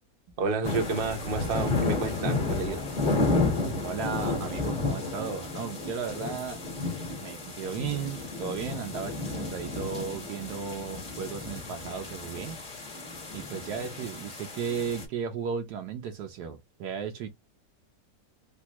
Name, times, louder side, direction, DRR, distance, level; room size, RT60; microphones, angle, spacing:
voice 1, 0.4-2.8, right 4 dB, 50° right, 0.6 m, -30 dB
sound 1, 0.6-15.0, left 3 dB, 30° left, 1.0 m, -32 dB
voice 2, 3.6-6.7 7.2-12.6 13.3-17.3, right 7 dB, 70° right, 1.1 m, -35 dB
3.4 x 2.4 x 2.8 m
omnidirectional pair, 1.9 m